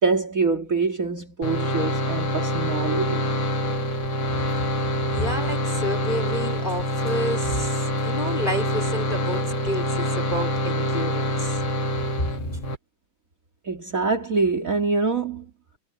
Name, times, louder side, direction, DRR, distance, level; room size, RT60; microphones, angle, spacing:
voice 1, 0.0-3.3 13.6-15.5, right 4 dB, 45° right, 2.8 m, -24 dB
sound 1, 1.4-12.8, equal, 85° left, 3.4 m, -26 dB
voice 2, 5.1-11.6 12.5-12.6, left 1 dB, 25° left, 3.1 m, -30 dB
omnidirectional pair, 2.1 m